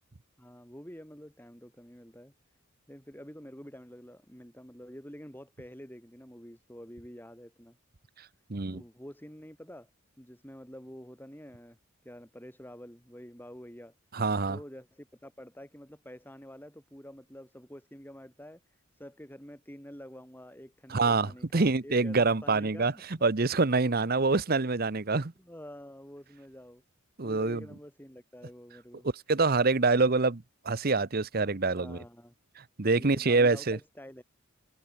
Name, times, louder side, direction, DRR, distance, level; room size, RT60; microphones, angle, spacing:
voice 1, 0.4-2.3 2.9-7.8 8.7-9.9 10.2-11.8 12.0-13.9 14.5-23.2 25.1-26.8 27.2-29.1 31.7-32.3 33.0-34.2, equal, 10° left, 5.5 m, -48 dB
voice 2, 8.5-8.8 14.1-14.6 20.9-22.9 23.2-25.3 27.2-27.6 29.3-32.0 32.6-33.8, right 3 dB, 45° right, 0.9 m, -26 dB
head